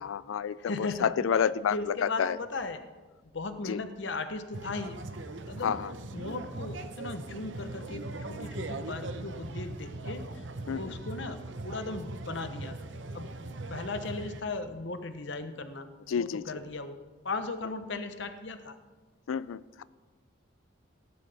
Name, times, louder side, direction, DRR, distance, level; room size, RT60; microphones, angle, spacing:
voice 1, 0.0-2.4 3.7-3.8 5.6-5.9 10.7-10.8 16.1-16.4 19.3-19.8, left 7 dB, 85° left, 17 dB, 0.4 m, -29 dB
voice 2, 0.6-2.8 3.3-5.0 5.5-5.8 6.1-12.8 13.1-13.3 13.7-15.9 16.2-17.0 17.2-18.8, left 3 dB, 65° left, 9 dB, 0.9 m, -37 dB
sound 1, 4.5-14.4, right 2 dB, 65° right, 0.8 m, -40 dB
17.0 x 11.5 x 3.5 m, 1.3 s
head